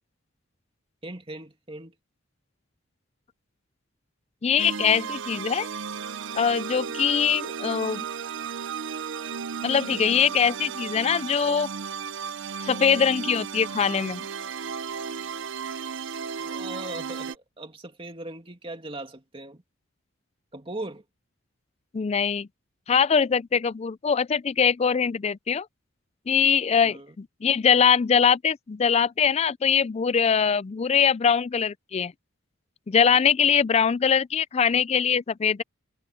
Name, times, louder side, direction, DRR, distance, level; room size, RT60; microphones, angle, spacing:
voice 1, 1.0-1.9 16.4-19.6 20.5-21.0 26.8-27.1, right 2 dB, 25° right, 2.5 m, -39 dB
voice 2, 4.4-5.7 6.4-8.0 9.6-11.7 12.6-14.2 21.9-22.5 22.9-25.7 26.3-32.1 32.9-35.6, left 7 dB, 30° left, 0.4 m, -22 dB
sound 1, 4.6-17.4, right 6 dB, 60° right, 0.6 m, -34 dB
head